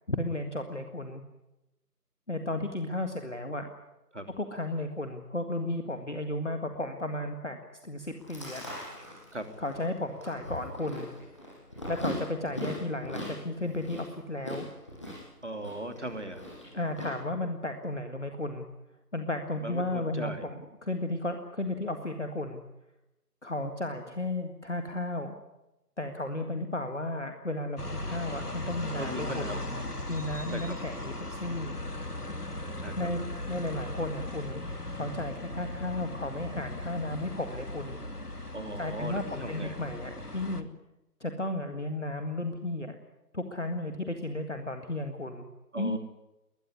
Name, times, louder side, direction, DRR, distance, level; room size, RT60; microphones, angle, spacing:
voice 1, 0.1-1.2 2.3-3.7 4.4-7.6 7.8-8.6 9.6-11.1 11.9-14.7 16.7-18.7 19.1-22.6 23.4-25.3 26.0-29.6 30.1-31.8 33.0-34.6 34.9-38.0 38.8-40.7 41.2-43.0 43.3-45.5 45.7-46.0, left 1 dB, 45° left, 6 dB, 2.0 m, -34 dB
Chewing mastication, 8.0-17.1, left 1 dB, 20° left, 6.5 m, -41 dB
voice 2, 15.4-16.4 19.6-20.4 29.0-29.6 30.5-30.8 32.8-33.1 38.5-39.7 45.7-46.0, right 1 dB, 45° right, 7 dB, 3.0 m, -38 dB
sound 1, 27.8-40.6, left 1 dB, 70° left, 2.4 m, -38 dB
21.0 x 20.0 x 9.8 m, 0.96 s
figure-of-eight pair, 175°, 48 cm